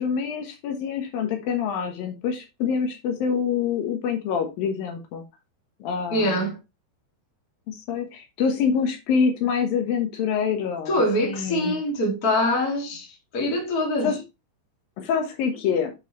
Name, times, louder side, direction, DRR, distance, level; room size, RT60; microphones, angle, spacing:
voice 1, 0.0-5.2 5.8-6.5 7.7-11.8 14.0-14.1 15.0-15.9, left 6 dB, 75° left, 2.9 m, -26 dB
voice 2, 6.1-6.6 10.9-14.1, left 1 dB, 30° left, 2.0 m, -24 dB
8.7 x 5.3 x 3.0 m
omnidirectional pair, 4.2 m